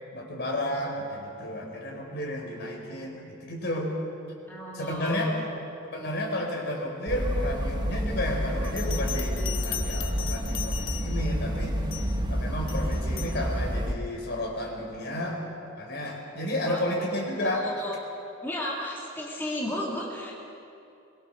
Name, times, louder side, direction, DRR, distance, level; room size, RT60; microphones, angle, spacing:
voice 1, 0.1-3.9 4.7-5.3 5.9-11.8 12.3-15.4 15.8-17.7, left 1 dB, 60° left, 0 dB, 4.8 m, -32 dB
voice 2, 4.5-5.4 16.6-17.1 17.4-17.9 18.4-20.3, left 1 dB, 10° left, -4 dB, 2.7 m, -33 dB
sound 1, 7.1-13.9, equal, 20° right, 1.2 m, -29 dB
Bell, 8.6-11.4 11.9-12.2 12.7-13.4, left 10 dB, 75° left, 1.4 m, -38 dB
22.0 x 22.0 x 6.6 m, 2.7 s
head